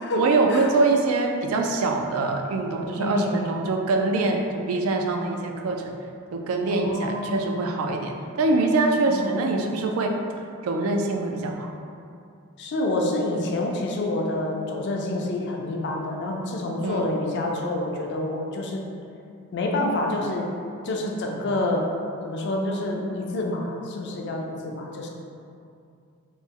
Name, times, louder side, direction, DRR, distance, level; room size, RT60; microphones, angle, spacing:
voice 1, 0.1-5.9 6.3-10.1 10.6-11.7 16.8-17.1, right 3 dB, 80° right, 3 dB, 0.3 m, -24 dB
voice 2, 3.0-3.5 6.7-7.5 9.1-9.5 12.6-18.8 19.5-20.5 20.8-21.9 22.2-25.1, left 1 dB, 55° left, 1 dB, 0.4 m, -27 dB
3.1 x 2.0 x 3.5 m, 2.5 s
head